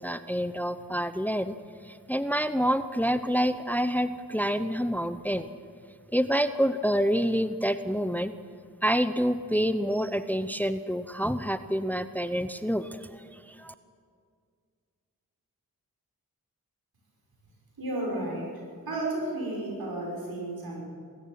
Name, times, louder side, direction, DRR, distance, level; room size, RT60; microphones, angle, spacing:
voice 1, 0.0-1.5 1.9-5.5 6.1-8.3 8.8-13.7, equal, 5° left, 12 dB, 0.8 m, -27 dB
voice 2, 17.8-18.5 18.9-20.8, right 1 dB, 80° right, -2 dB, 6.1 m, -32 dB
20.0 x 14.0 x 9.5 m, 2.1 s
cardioid pair, 45°, 36 cm